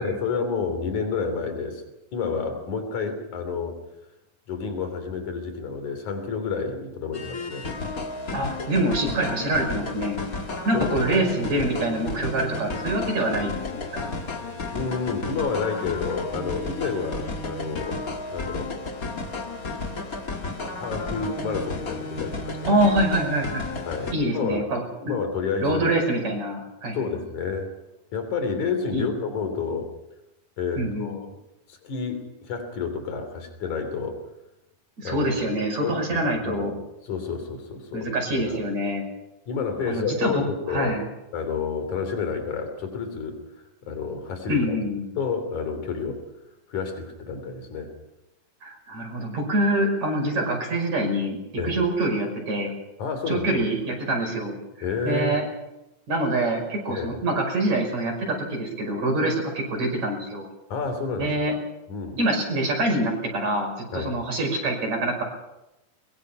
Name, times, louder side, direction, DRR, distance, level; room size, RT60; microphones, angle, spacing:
voice 1, 0.0-1.8 2.1-3.8 4.5-7.7 10.7-11.0 14.7-18.0 18.3-18.7 20.7-22.8 23.9-24.7 25.0-25.9 26.9-27.7 28.1-29.9 30.6-31.4 31.7-34.2 35.0-35.3 35.8-36.8 37.0-38.6 39.5-41.0 41.3-44.8 45.2-46.2 46.7-47.9 51.6-51.8 53.0-53.5 54.8-55.4 56.9-57.2 60.7-61.3 61.9-62.2 63.9-64.1, left 5 dB, 65° left, 7 dB, 4.6 m, -30 dB
sound 1, 7.1-24.1, left 3 dB, 35° left, 1.8 m, -32 dB
voice 2, 8.3-10.2 10.7-14.1 22.7-23.7 24.1-25.1 25.6-27.1 28.9-29.1 30.8-31.2 35.0-36.7 37.9-39.0 39.9-41.0 44.5-45.1 48.6-52.7 53.3-54.5 55.0-55.4 56.1-60.5 61.2-61.5 62.2-65.2, right 1 dB, 60° right, 2 dB, 6.7 m, -25 dB
22.5 x 22.0 x 5.7 m, 0.92 s
omnidirectional pair, 3.7 m